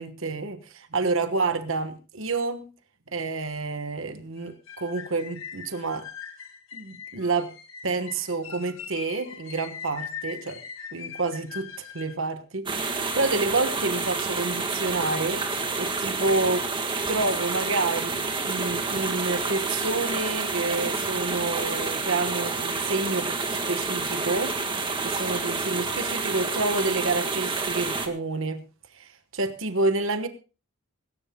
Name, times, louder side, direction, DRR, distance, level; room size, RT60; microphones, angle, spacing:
voice 1, 0.0-2.7 3.1-6.1 6.7-7.5 7.8-10.6 10.9-16.7 17.1-24.6 25.0-28.6 28.9-30.3, right 3 dB, 60° right, 1.3 m, -29 dB
sound 1, 4.4-12.2, left 7 dB, 65° left, 1.8 m, -41 dB
sound 2, 12.7-28.1, right 4 dB, 20° right, 1.7 m, -29 dB
24.0 x 13.0 x 2.2 m
head